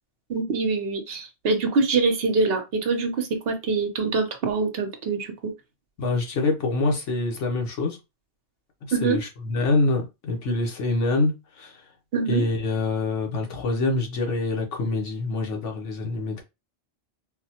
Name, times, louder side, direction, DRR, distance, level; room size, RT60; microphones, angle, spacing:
voice 1, 0.3-5.5 8.9-9.2 12.1-12.4, right 4 dB, 60° right, 0.9 m, -24 dB
voice 2, 6.0-8.0 9.0-11.8 12.3-16.4, left 2 dB, 85° left, 1.2 m, -25 dB
4.1 x 2.1 x 2.8 m
omnidirectional pair, 1.2 m